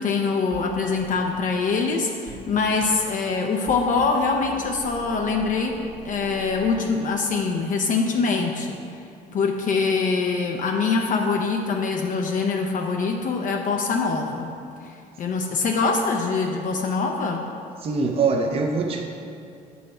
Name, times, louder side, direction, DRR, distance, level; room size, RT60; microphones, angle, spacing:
voice 1, 0.0-5.7 6.0-8.8 9.3-14.5 14.8-17.4, left 4 dB, 50° left, 2 dB, 0.6 m, -24 dB
sound 1, 0.5-0.7 1.0-1.2 2.3-3.0 3.7-4.1 4.4-6.9, right 2 dB, 75° right, 1.1 m, -41 dB
voice 2, 17.8-19.0, right 4 dB, 35° right, 2 dB, 0.6 m, -23 dB
7.5 x 5.5 x 4.3 m, 2.5 s
cardioid pair, 110°, 17 cm